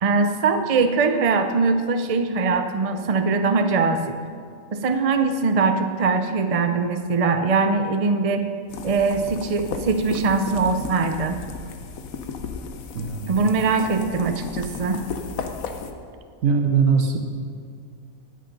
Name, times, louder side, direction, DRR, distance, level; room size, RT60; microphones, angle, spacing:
voice 1, 0.0-4.2 4.7-8.5 8.8-11.4 13.3-15.1, right 4 dB, 50° right, 7 dB, 0.4 m, -22 dB
sound 1, 8.7-15.9, left 5 dB, 80° left, 1.3 m, -34 dB
voice 2, 12.9-13.6 16.4-17.2, right 5 dB, 75° right, 4 dB, 1.4 m, -21 dB
19.0 x 6.6 x 5.3 m, 2.2 s
omnidirectional pair, 1.4 m